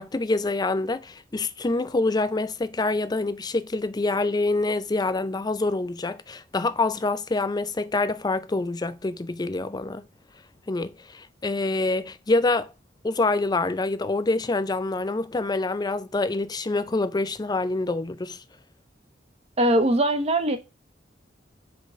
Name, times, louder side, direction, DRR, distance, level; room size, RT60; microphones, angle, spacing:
voice 1, 0.0-10.1 10.7-12.7 13.0-18.4, left 2 dB, 20° left, 0.4 m, -26 dB
voice 2, 19.6-20.6, right 1 dB, 35° right, 1.0 m, -21 dB
5.1 x 3.8 x 5.5 m
head